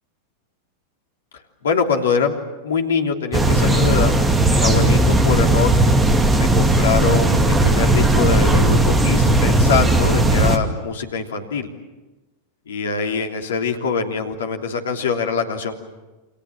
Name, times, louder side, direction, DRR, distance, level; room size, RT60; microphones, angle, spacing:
voice 1, 1.6-2.4 2.6-4.1 4.4-5.7 6.3-11.7 12.7-15.7, left 6 dB, 65° left, 3 dB, 3.3 m, -23 dB
sound 1, 3.3-10.6, right 1 dB, 15° right, 2.4 m, -16 dB
29.0 x 26.5 x 7.4 m, 1.1 s
figure-of-eight pair, 90°, 0 cm